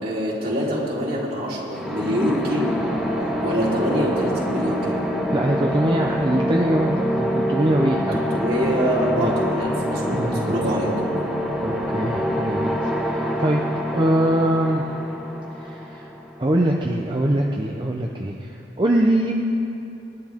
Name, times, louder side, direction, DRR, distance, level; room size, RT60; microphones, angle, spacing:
voice 1, 0.0-2.7 3.4-5.0 8.3-10.9, equal, 55° right, -6 dB, 3.9 m, -25 dB
sound 1, 1.7-16.4, equal, 5° right, 1.6 m, -25 dB
voice 2, 5.3-8.2 9.2-9.3 10.1-10.5 11.6-13.6 13.9-15.0 15.6-16.1 16.4-19.3, right 1 dB, 25° right, 0 dB, 0.7 m, -23 dB
26.0 x 11.5 x 3.7 m, 2.8 s
head